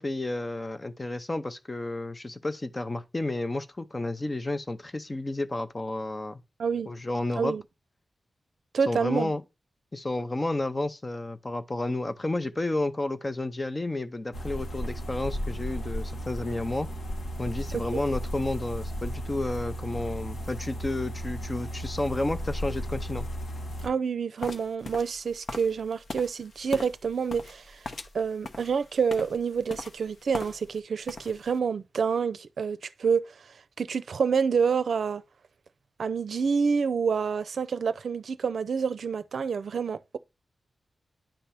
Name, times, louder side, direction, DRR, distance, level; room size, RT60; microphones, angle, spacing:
voice 1, 0.0-6.4 6.9-7.5 8.9-9.4 9.9-16.9 17.4-23.3, left 2 dB, 20° left, 0.7 m, -31 dB
voice 2, 8.7-9.3 17.7-18.0 23.8-27.8 28.1-33.3 33.8-35.2 36.0-40.2, right 6 dB, 70° right, 0.5 m, -28 dB
sound 1, 14.3-23.9, equal, 80° left, 1.9 m, -35 dB
sound 2, 24.4-30.8 31.0-31.6, left 3 dB, 55° left, 1.0 m, -40 dB
10.0 x 3.4 x 5.7 m
wide cardioid pair, 170°, 0 cm